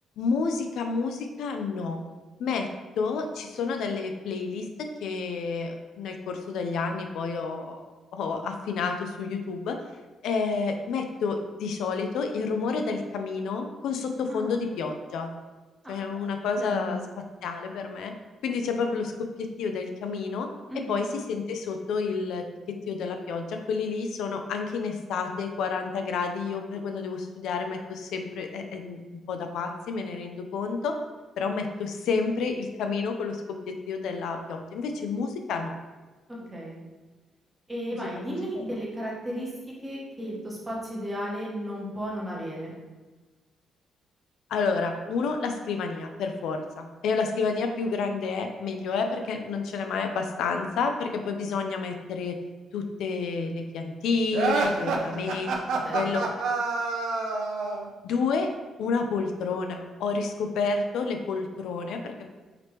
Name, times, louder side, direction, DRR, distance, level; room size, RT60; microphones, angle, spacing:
voice 1, 0.2-2.0 2.4-2.7 3.0-7.8 8.1-9.8 10.2-15.3 15.9-17.0 17.4-18.1 18.4-19.1 19.4-20.5 20.9-22.4 22.9-29.0 29.3-31.0 31.4-33.4 33.7-35.8 36.4-36.5 38.1-38.6 44.5-52.4 52.7-56.3 58.0-58.5 58.8-62.3, left 4 dB, 80° left, 5 dB, 0.4 m, -30 dB
voice 2, 16.6-17.0 20.7-21.1 36.5-36.8 37.7-39.5 39.8-42.8 55.8-56.0, equal, 10° right, -4 dB, 0.9 m, -34 dB
sound 1, 54.3-57.9, right 3 dB, 90° right, 0.5 m, -27 dB
4.9 x 2.9 x 3.0 m, 1.3 s
cardioid pair, 180°, 0 cm